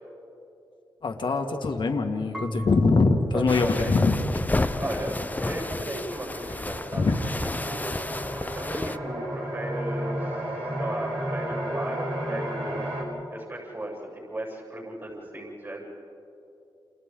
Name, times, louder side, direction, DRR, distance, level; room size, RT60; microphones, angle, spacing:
voice 1, 1.0-4.2 6.9-7.1, left 3 dB, 65° left, 3 dB, 2.0 m, -23 dB
Marimba xylophone / Wood, 2.3-5.2, left 1 dB, ahead, 2.4 m, -37 dB
voice 2, 3.3-4.0 4.8-7.1 7.4-8.0 8.5-12.8 13.3-15.8, right 1 dB, 30° right, -4 dB, 7.6 m, -36 dB
sound 1, 3.5-9.0, left 2 dB, 20° left, 0.7 m, -31 dB
sound 2, 4.6-13.0, right 1 dB, 70° right, 6.0 m, -34 dB
29.5 x 28.5 x 3.9 m, 2.8 s
cardioid pair, 70°, 9 cm